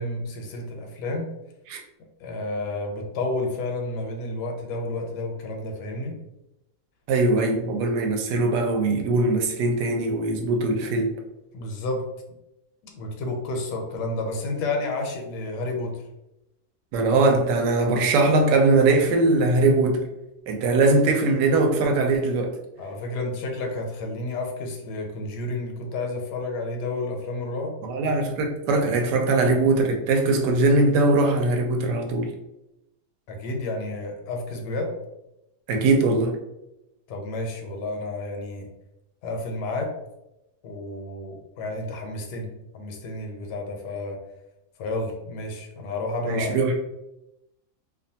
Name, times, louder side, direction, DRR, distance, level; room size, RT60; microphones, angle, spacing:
voice 1, 0.0-1.3 2.2-6.2 11.5-12.0 12.8-16.0 22.8-27.8 29.0-29.1 33.3-34.9 37.1-38.7 39.2-40.0 40.6-44.2 44.8-46.6, left 2 dB, 85° left, 2 dB, 1.2 m, -31 dB
voice 2, 7.1-11.1 16.9-20.0 20.5-22.5 27.8-32.3 35.7-36.4 46.3-46.8, right 2 dB, 90° right, 3 dB, 1.2 m, -21 dB
2.9 x 2.2 x 2.7 m, 0.91 s
omnidirectional pair, 1.8 m